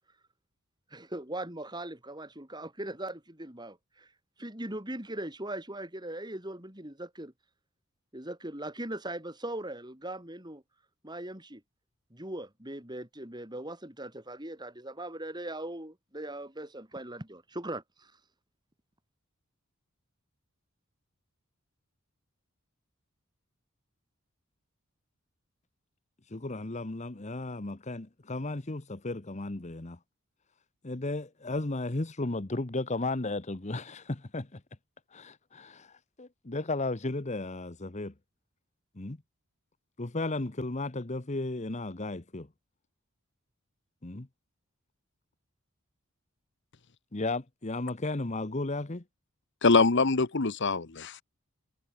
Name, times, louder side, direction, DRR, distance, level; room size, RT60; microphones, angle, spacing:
voice 1, 0.9-4.1 4.4-7.3 8.1-10.6 11.0-11.6 12.1-18.1, right 1 dB, 20° right, 5.4 m, -40 dB
voice 2, 26.3-30.0 30.8-34.6 35.1-38.1 39.0-39.2 40.0-42.5 44.0-44.3 47.1-49.0, left 2 dB, 30° left, 1.0 m, -34 dB
voice 3, 49.6-51.2, left 3 dB, 55° left, 1.1 m, -24 dB
head